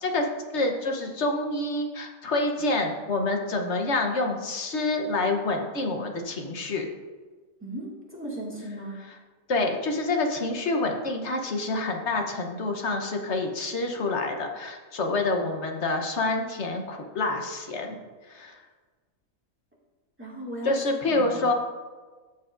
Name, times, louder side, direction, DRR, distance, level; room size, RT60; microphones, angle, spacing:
voice 1, 0.5-6.8 9.5-18.0 18.3-18.6 20.6-21.5, left 2 dB, 55° left, 3 dB, 1.3 m, -27 dB
voice 2, 7.6-9.0 20.2-20.7 21.1-21.5, right 1 dB, 10° right, -6 dB, 2.1 m, -37 dB
13.5 x 7.2 x 2.6 m, 1.4 s
omnidirectional pair, 1.4 m